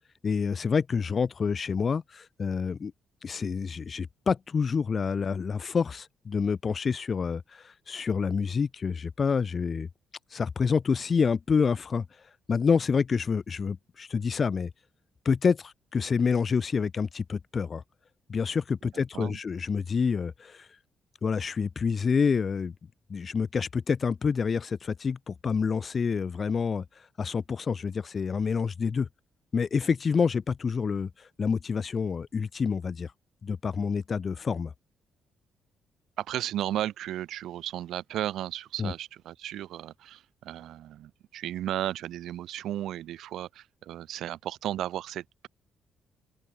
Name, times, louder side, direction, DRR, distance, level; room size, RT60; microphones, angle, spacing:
voice 1, 0.2-2.9 3.2-9.9 10.3-12.0 12.5-14.7 15.2-17.8 18.3-20.7 21.2-22.7 23.1-29.1 29.5-33.1 33.4-34.7 38.8-38.9, left 5 dB, 40° left, 2.1 m, -28 dB
voice 2, 36.2-45.5, right 12 dB, 80° right, 5.1 m, -34 dB
open air
cardioid pair, 90°, 0 cm